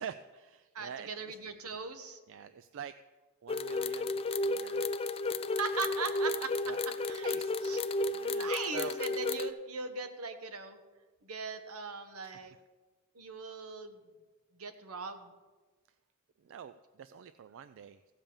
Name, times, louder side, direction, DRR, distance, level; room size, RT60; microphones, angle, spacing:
voice 1, 0.0-1.4 2.3-2.9 3.4-4.9 5.3-5.4 6.7-6.8 7.1-9.0 12.2-12.5 16.4-18.0, right 7 dB, 60° right, 12 dB, 0.4 m, -47 dB
voice 2, 0.7-2.2 5.6-6.5 7.1-7.3 7.6-7.8 8.3-10.8 11.2-12.5 13.1-14.0 14.6-15.3, right 4 dB, 80° right, 7 dB, 1.1 m, -39 dB
sound 1, 3.5-9.5, left 2 dB, 25° left, 0.4 m, -33 dB
16.0 x 5.4 x 7.1 m, 1.3 s
head